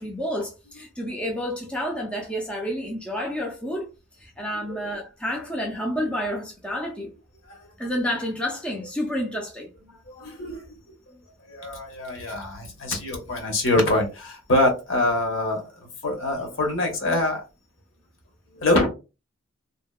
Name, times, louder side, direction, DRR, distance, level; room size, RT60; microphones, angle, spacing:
voice 1, 0.0-3.9 4.2-7.1 7.8-9.7, equal, 5° left, 0.3 m, -29 dB
voice 2, 10.1-10.7 11.4-17.4 18.5-18.9, left 2 dB, 70° left, 0.8 m, -25 dB
2.7 x 2.1 x 2.2 m
head